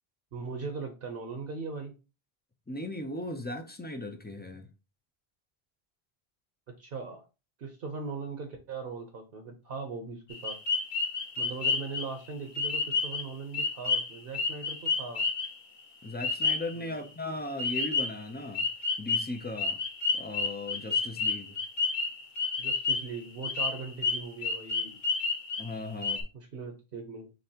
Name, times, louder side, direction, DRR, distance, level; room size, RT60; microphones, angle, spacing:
voice 1, 0.3-1.9 6.8-7.2 7.6-10.6 11.4-15.3 16.7-17.0 22.6-25.0 26.3-27.3, right 4 dB, 65° right, 0.9 m, -39 dB
voice 2, 2.7-4.7 16.0-18.7 19.0-19.8 20.1-21.6 25.6-26.2, left 2 dB, 15° left, 0.3 m, -37 dB
sound 1, 10.3-12.1 12.6-13.3 13.5-15.6 16.2-16.7 17.6-18.2 18.5-23.2 23.4-25.7 26.0-26.2, left 4 dB, 50° left, 0.9 m, -30 dB
5.3 x 3.3 x 2.8 m
omnidirectional pair, 1.1 m